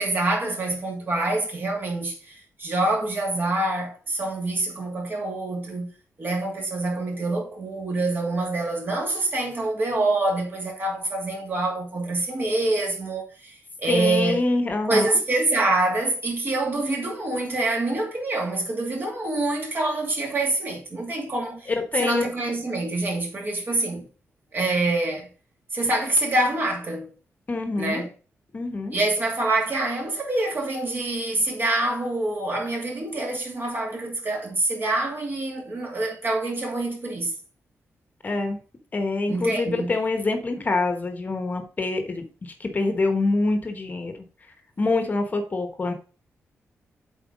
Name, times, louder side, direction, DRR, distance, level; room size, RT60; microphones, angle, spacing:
voice 1, 0.0-5.9 6.2-14.4 14.9-24.1 24.5-25.3 25.7-27.1 27.8-28.1 28.9-37.3 39.3-39.9, right 2 dB, 40° right, 2.6 m, -26 dB
voice 2, 13.9-15.1 21.7-22.2 27.5-28.0 28.5-28.9 38.2-38.6 38.9-44.1 44.8-45.9, left 3 dB, 35° left, 1.1 m, -25 dB
7.8 x 4.5 x 4.9 m
wide cardioid pair, 135°, 5 cm